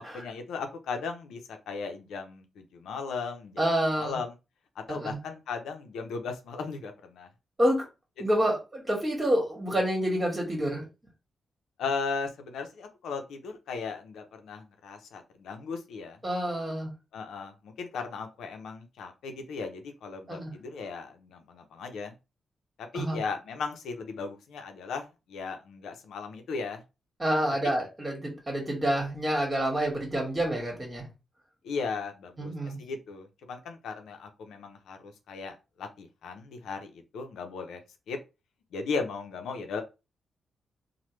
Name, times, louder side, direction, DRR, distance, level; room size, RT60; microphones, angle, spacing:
voice 1, 0.0-3.6 4.0-4.3 4.9-7.3 11.8-16.2 17.1-22.1 22.8-26.8 31.6-37.8 38.1-38.2 38.7-39.8, left 4 dB, 90° left, 5 dB, 0.5 m, -37 dB
voice 2, 3.6-4.2 4.9-5.2 7.6-7.8 8.2-10.8 16.2-16.9 20.3-20.5 22.9-23.2 27.2-31.1 32.4-32.8, right 1 dB, 25° right, 1 dB, 1.5 m, -28 dB
3.1 x 2.1 x 3.1 m, 0.27 s
cardioid pair, 70°, 0 cm